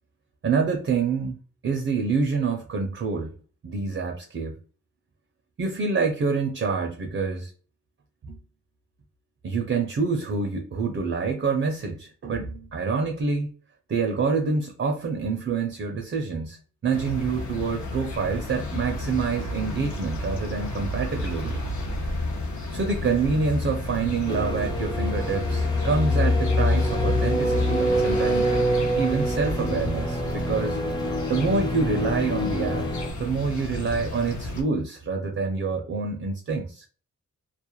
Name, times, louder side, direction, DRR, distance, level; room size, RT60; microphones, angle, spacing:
voice 1, 0.4-3.3 3.6-4.6 5.6-7.5 8.2-8.4 9.4-13.5 13.9-21.7 22.7-28.5 28.9-30.8 31.3-32.9 33.2-36.9, right 4 dB, 40° right, 0.5 m, -27 dB
sound 1, 16.9-34.6, left 3 dB, 60° left, 0.7 m, -29 dB
sound 2, 24.3-33.1, right 1 dB, 15° left, 0.4 m, -27 dB
2.3 x 2.0 x 2.9 m
cardioid pair, 90°, 32 cm